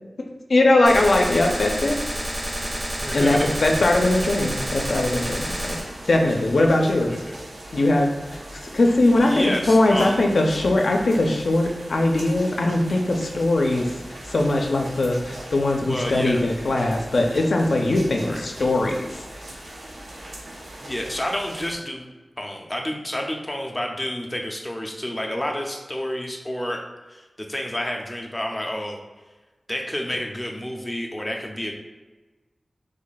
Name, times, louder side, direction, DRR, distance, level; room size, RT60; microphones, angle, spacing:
voice 1, 0.2-2.4 3.1-5.8 6.1-7.1 7.7-8.4 8.7-19.6, left 2 dB, 75° left, 2 dB, 0.4 m, -21 dB
Gunshot gunfire, 0.9-5.9, right 1 dB, 45° right, 0.7 m, -29 dB
voice 2, 2.6-3.5 7.1-7.4 9.2-10.3 13.7-13.9 15.9-16.4 18.2-18.4 20.3-20.4 20.8-22.1 22.4-26.8 27.1-29.0 29.7-31.7, left 1 dB, 15° left, 1 dB, 0.4 m, -30 dB
sound 1, 3.5-21.8, right 1 dB, 85° right, 0.6 m, -40 dB
3.1 x 2.2 x 3.9 m, 1.2 s
wide cardioid pair, 90°, 0 cm